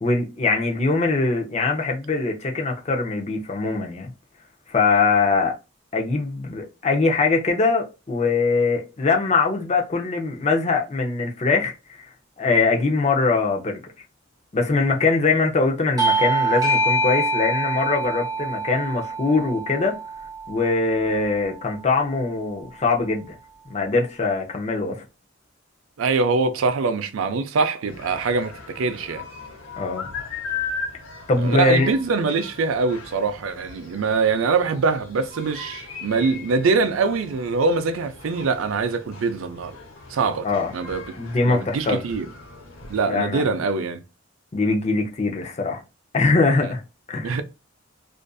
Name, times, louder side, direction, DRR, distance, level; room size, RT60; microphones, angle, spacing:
voice 1, 0.0-4.1 4.7-5.6 5.9-12.0 12.4-13.8 14.5-20.0 20.5-23.4 23.7-25.0 29.8-30.1 31.3-31.9 40.4-40.7 41.2-42.0 43.1-43.5 44.5-45.8 46.1-46.8 47.1-47.4, left 3 dB, 35° left, 0.5 m, -22 dB
Bell / Doorbell, 16.0-21.1, right 2 dB, 20° right, 0.7 m, -25 dB
voice 2, 26.0-29.2 31.4-39.8 40.1-40.5 40.7-41.0 41.4-42.3 42.9-44.0 47.2-47.4, right 4 dB, 85° right, 0.4 m, -23 dB
sound 1, 27.9-43.0, left 5 dB, 80° left, 0.9 m, -38 dB
2.5 x 2.5 x 2.2 m
head